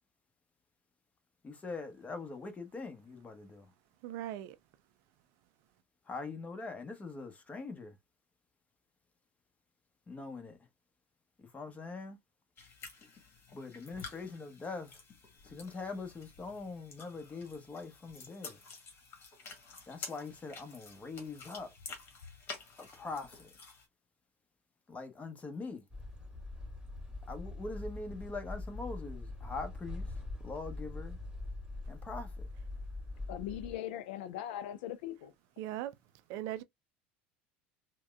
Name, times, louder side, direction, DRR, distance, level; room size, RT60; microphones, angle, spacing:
voice 1, 1.4-3.7 6.1-7.9 10.1-10.6 11.4-12.2 13.5-15.0 15.4-18.6 19.9-21.7 22.8-23.5 24.9-25.8 27.3-30.1 30.4-31.2 31.9-32.3, left 3 dB, 25° left, 1.0 m, -42 dB
voice 2, 4.0-4.6 35.6-35.9 36.3-36.6, right 13 dB, 60° right, 0.4 m, -38 dB
sound 1, 12.6-23.9, left 4 dB, 40° left, 1.5 m, -50 dB
sound 2, 25.9-33.8, left 2 dB, 10° right, 2.4 m, -43 dB
voice 3, 33.3-35.3, left 11 dB, 70° left, 0.3 m, -40 dB
4.6 x 2.2 x 2.3 m
hypercardioid pair, 75°, 6 cm